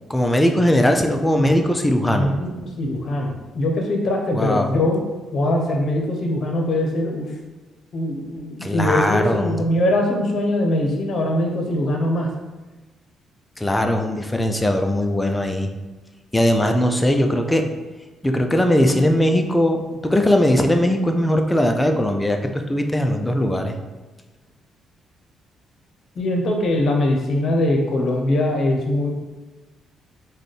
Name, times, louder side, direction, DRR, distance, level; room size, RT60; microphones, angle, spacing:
voice 1, 0.1-2.3 4.3-4.7 8.6-9.6 13.6-15.7 16.3-17.7 18.2-23.8, left 1 dB, 10° left, 4 dB, 0.4 m, -19 dB
voice 2, 2.1-5.0 5.3-7.2 7.9-12.3 26.2-29.1, left 1 dB, 55° left, 1 dB, 0.7 m, -22 dB
3.3 x 2.2 x 4.1 m, 1.2 s
cardioid pair, 90°, 0 cm